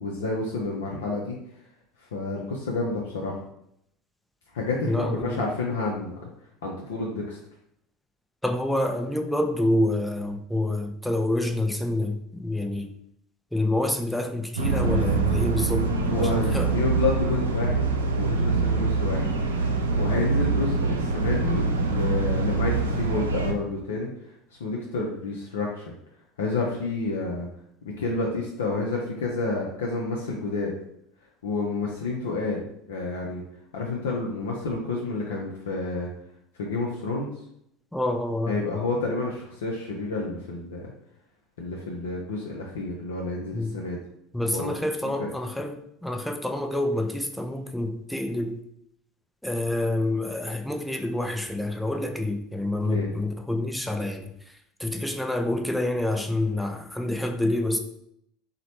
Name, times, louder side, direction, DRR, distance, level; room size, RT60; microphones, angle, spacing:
voice 1, 0.0-1.4 2.0-3.4 4.5-6.3 6.6-7.4 16.0-17.9 18.2-19.3 19.9-24.1 24.6-25.9 26.4-27.5 27.8-30.7 31.4-32.6 32.9-33.4 33.7-36.1 36.6-37.3 38.5-40.8 41.6-44.0 44.5-44.8 45.2-45.3 52.8-53.1, left 3 dB, 75° left, -2 dB, 0.4 m, -29 dB
voice 2, 4.9-5.4 8.4-12.9 13.5-15.9 16.2-16.7 37.9-38.6 43.5-43.7 44.3-48.6 49.4-54.3 54.8-57.8, left 1 dB, 5° left, 5 dB, 0.3 m, -27 dB
sound 1, 14.6-23.5, right 3 dB, 80° right, 0.3 m, -24 dB
2.9 x 2.0 x 2.8 m, 0.74 s
figure-of-eight pair, 70°, 0 cm